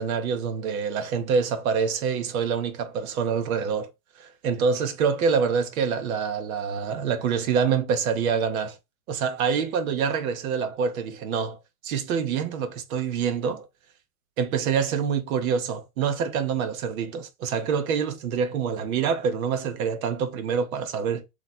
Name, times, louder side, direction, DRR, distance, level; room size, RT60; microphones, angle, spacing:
voice 1, 0.0-3.9 4.2-8.8 9.1-11.6 11.8-13.7 14.4-21.2, right 6 dB, 65° right, 1.1 m, -26 dB
3.2 x 3.1 x 4.1 m
hypercardioid pair, 115°, 45 cm